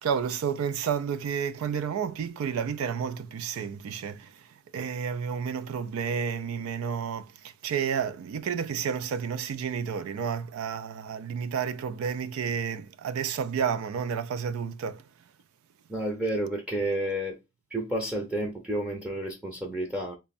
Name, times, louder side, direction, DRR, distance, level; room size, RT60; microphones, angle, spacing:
voice 1, 0.0-4.5 4.7-15.0, right 7 dB, 70° right, 0.3 m, -31 dB
voice 2, 15.9-17.4 17.7-20.2, right 1 dB, 5° right, 0.6 m, -30 dB
3.3 x 2.2 x 3.9 m
head